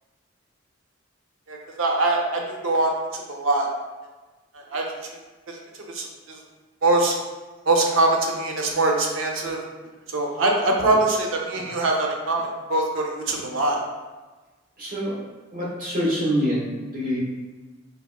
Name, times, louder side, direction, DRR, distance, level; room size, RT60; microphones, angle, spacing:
voice 1, 1.5-3.7 4.5-4.9 5.5-5.6 5.9-6.4 6.8-7.1 7.7-9.6 10.1-13.8, right 2 dB, 80° right, 0 dB, 0.6 m, -23 dB
voice 2, 14.8-15.3 15.5-17.2, equal, 45° right, -7 dB, 1.1 m, -26 dB
4.0 x 2.9 x 2.2 m, 1.3 s
head